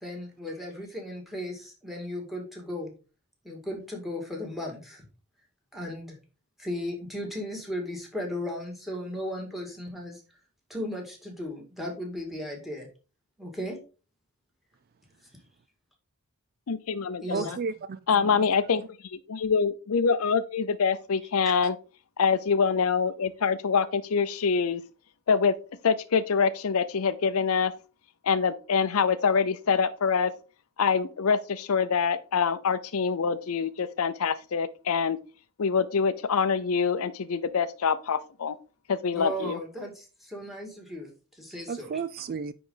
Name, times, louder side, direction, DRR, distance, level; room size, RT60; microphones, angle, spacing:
voice 1, 0.0-2.9 3.4-5.1 5.7-6.2 6.6-10.2 10.7-12.9 13.4-13.8 17.2-17.5 21.4-21.5 39.1-41.1 41.4-42.0, left 1 dB, ahead, 2.0 m, -36 dB
voice 2, 16.7-17.6 18.1-21.8 22.2-24.8 25.3-25.5 25.8-27.7 28.2-30.3 30.8-35.2 35.6-38.6 38.9-39.6, left 5 dB, 70° left, 0.5 m, -25 dB
voice 3, 17.3-18.4 41.7-42.5, right 5 dB, 45° right, 0.3 m, -33 dB
9.6 x 3.9 x 3.8 m
head